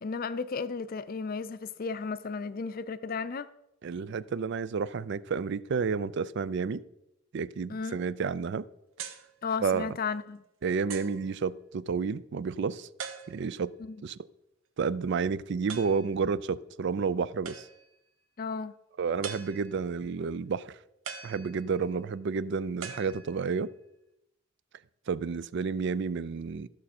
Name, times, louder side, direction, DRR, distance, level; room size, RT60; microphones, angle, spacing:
voice 1, 0.0-3.5 7.7-8.0 9.4-10.4 13.8-14.0 18.4-18.7, left 5 dB, 45° left, 0.5 m, -34 dB
voice 2, 3.8-6.8 7.3-8.7 9.6-9.9 10.6-12.9 13.3-14.2 14.8-17.7 19.0-20.8 21.2-23.7 25.1-26.7, right 5 dB, 60° right, 0.4 m, -31 dB
sound 1, 9.0-9.3 10.0-10.1 10.9-11.3 13.0-13.6 15.7-16.1 17.4-18.0 19.2-19.9 21.0-21.9 22.8-23.6, right 6 dB, 90° right, 0.9 m, -42 dB
13.5 x 6.4 x 4.3 m
head